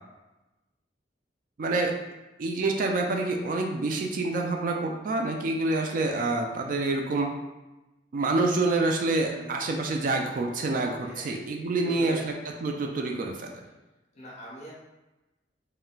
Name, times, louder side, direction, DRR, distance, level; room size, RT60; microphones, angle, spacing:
voice 1, 1.6-1.9 2.4-7.3 8.1-12.3 12.6-13.6, right 2 dB, 50° right, 2 dB, 0.3 m, -27 dB
voice 2, 9.2-9.5 11.0-11.4 11.8-12.2 14.1-14.7, equal, 40° left, -7 dB, 1.1 m, -41 dB
3.8 x 2.1 x 2.2 m, 1.0 s
head